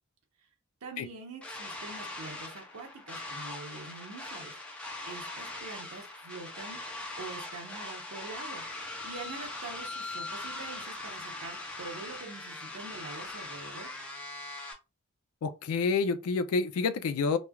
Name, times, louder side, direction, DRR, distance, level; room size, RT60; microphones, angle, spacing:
voice 1, 0.8-6.8 7.2-13.9, right 3 dB, 80° right, 0.8 m, -45 dB
sound 1, 1.4-14.7, left 2 dB, 5° left, 0.5 m, -41 dB
voice 2, 15.4-17.4, left 4 dB, 80° left, 0.4 m, -28 dB
3.1 x 2.3 x 2.2 m
head